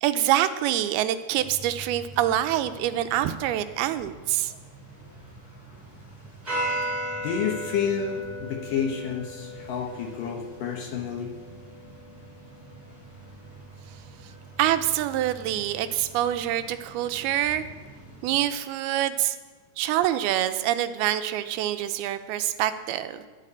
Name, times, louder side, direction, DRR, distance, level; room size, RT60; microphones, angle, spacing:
voice 1, 0.0-4.5 14.6-17.6 18.2-19.4 19.8-23.3, right 12 dB, 80° right, 11 dB, 2.4 m, -25 dB
sound 1, 1.4-18.4, right 1 dB, 10° right, 6.0 m, -39 dB
voice 2, 7.2-11.3, left 7 dB, 65° left, 2 dB, 2.4 m, -29 dB
12.5 x 11.0 x 8.5 m, 1.3 s
omnidirectional pair, 4.9 m